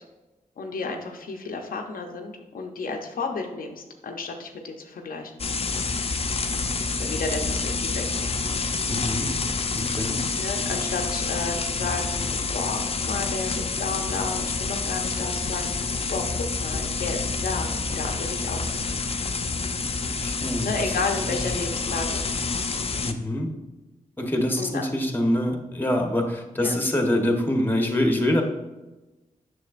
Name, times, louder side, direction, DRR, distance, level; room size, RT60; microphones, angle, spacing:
voice 1, 0.6-5.3 7.0-8.3 10.3-15.8 16.1-18.9 20.6-22.3 24.6-24.8 26.6-26.8, left 4 dB, 80° left, 3 dB, 0.7 m, -32 dB
sound 1, 5.4-23.1, left 4 dB, 45° left, 0.5 m, -28 dB
voice 2, 8.9-9.3 9.7-10.2 20.1-21.4 23.0-23.5 24.2-28.4, left 1 dB, 15° left, 3 dB, 1.1 m, -25 dB
7.4 x 6.1 x 2.5 m, 1.1 s
cardioid pair, 60°, 14 cm